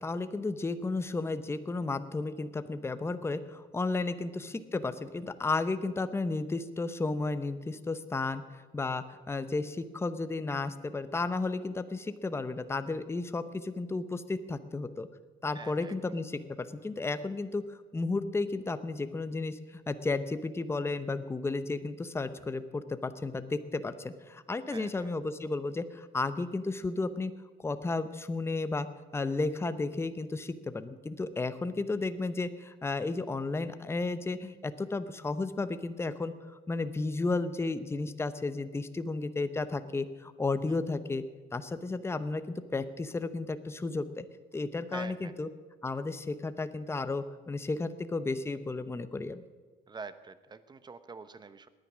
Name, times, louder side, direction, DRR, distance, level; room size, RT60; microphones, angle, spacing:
voice 1, 0.0-8.4 8.7-15.1 15.4-27.3 27.6-28.9 29.1-41.2 41.5-44.2 44.5-45.5 45.8-49.4, left 3 dB, 15° left, 11 dB, 0.8 m, -33 dB
voice 2, 15.5-15.9 24.7-25.1 40.7-40.8 44.9-45.3 49.9-51.7, right 4 dB, 25° right, 13 dB, 0.9 m, -45 dB
18.5 x 10.0 x 6.2 m, 1.4 s
cardioid pair, 110°, 17 cm